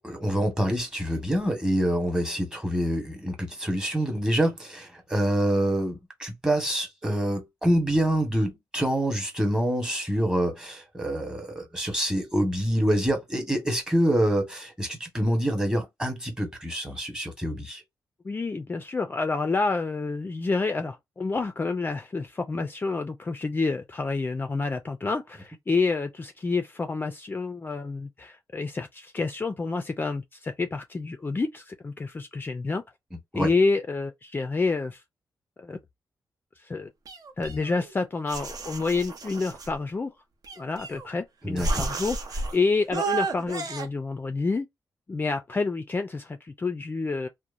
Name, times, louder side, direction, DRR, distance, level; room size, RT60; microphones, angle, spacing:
voice 1, 0.0-17.8 33.3-33.5 41.4-41.9, right 1 dB, 10° right, 1.0 m, -26 dB
voice 2, 18.2-32.8 33.3-35.0 35.6-35.8 36.6-36.9 37.4-40.1 40.6-44.7 45.1-47.3, left 3 dB, 25° left, 0.4 m, -28 dB
sound 1, 37.1-37.9 38.3-39.7 40.4-41.2 41.6-42.6 42.9-43.9, right 3 dB, 60° right, 0.7 m, -32 dB
2.8 x 2.0 x 2.4 m
cardioid pair, 95°, 7 cm